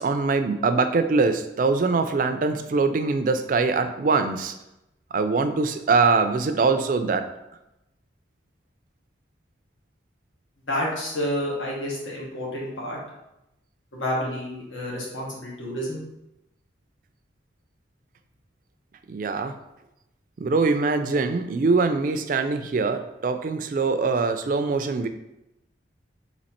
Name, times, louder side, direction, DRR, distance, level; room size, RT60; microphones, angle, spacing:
voice 1, 0.0-4.5 5.1-7.2 19.1-19.5 20.4-25.1, right 4 dB, 45° right, 9 dB, 0.3 m, -23 dB
voice 2, 10.7-13.0 13.9-16.0, equal, 85° left, -4 dB, 1.3 m, -29 dB
4.1 x 2.8 x 4.3 m, 0.89 s
head